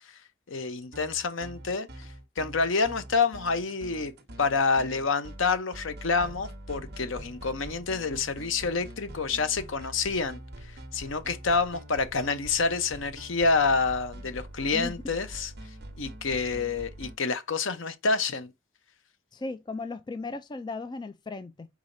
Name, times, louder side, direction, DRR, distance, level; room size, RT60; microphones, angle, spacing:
voice 1, 0.5-2.1 2.4-4.1 4.4-15.5 16.0-18.5, left 4 dB, 70° left, 0.8 m, -28 dB
sound 1, 0.8-17.2, right 1 dB, 55° right, 1.1 m, -44 dB
voice 2, 19.3-21.7, left 3 dB, 20° left, 0.3 m, -36 dB
4.8 x 4.1 x 2.6 m
head